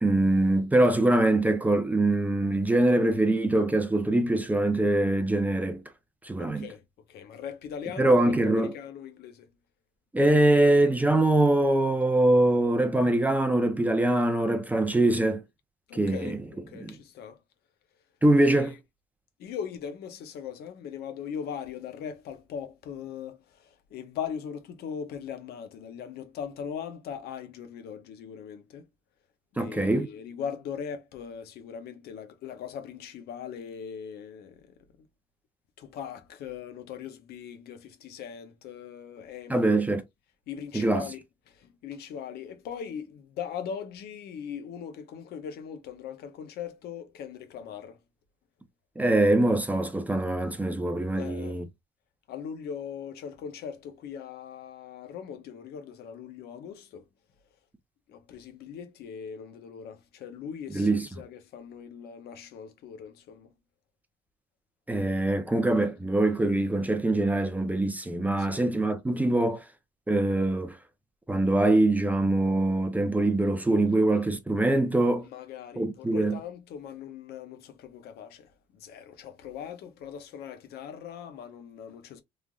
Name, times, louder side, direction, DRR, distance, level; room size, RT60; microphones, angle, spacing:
voice 1, 0.0-5.8 6.2-6.7 8.0-8.7 10.1-15.4 15.9-16.4 16.7-16.9 18.2-18.7 29.6-30.1 39.5-40.0 40.7-41.1 49.0-51.7 60.7-61.1 64.9-69.6 70.1-70.8 71.3-75.3 75.8-76.4, right 2 dB, 10° right, 0.5 m, -23 dB
voice 2, 6.4-6.8 7.1-9.5 15.9-17.4 18.4-18.7 19.4-28.8 29.5-34.7 35.8-39.7 40.5-48.0 51.2-51.6 52.3-57.0 58.1-63.5 68.4-68.7 75.3-82.2, left 7 dB, 70° left, 0.7 m, -40 dB
3.2 x 2.4 x 2.2 m
cardioid pair, 110°, 17 cm